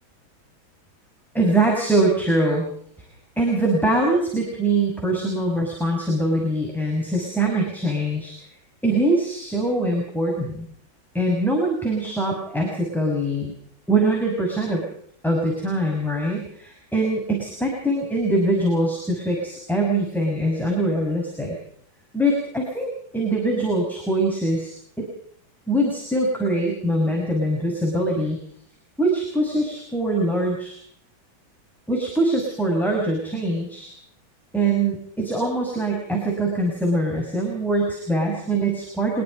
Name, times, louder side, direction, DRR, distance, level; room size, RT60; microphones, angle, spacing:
voice 1, 1.3-2.7 3.4-8.3 8.8-10.7 11.1-13.5 13.9-14.8 15.2-21.6 22.1-24.7 25.0-25.1 25.7-28.4 29.0-30.8 31.9-33.9 34.5-39.2, right 1 dB, ahead, -1 dB, 5.9 m, -23 dB
24.5 x 22.0 x 5.3 m, 0.63 s
omnidirectional pair, 2.1 m